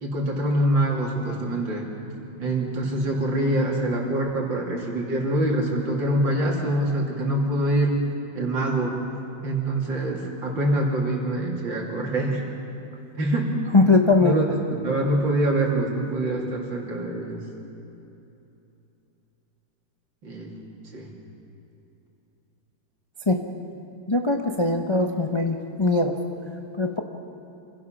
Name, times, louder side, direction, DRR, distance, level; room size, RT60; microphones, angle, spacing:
voice 1, 0.0-1.9 2.4-8.0 8.3-9.0 9.4-12.4 13.2-13.5 14.2-14.5 14.8-17.4 20.2-20.5 20.9-21.1, right 1 dB, 80° right, -1 dB, 3.6 m, -25 dB
voice 2, 13.7-14.3 23.3-23.4 24.1-26.1 26.8-27.0, left 3 dB, 30° left, 3 dB, 0.5 m, -20 dB
26.5 x 16.5 x 5.9 m, 2.9 s
omnidirectional pair, 2.0 m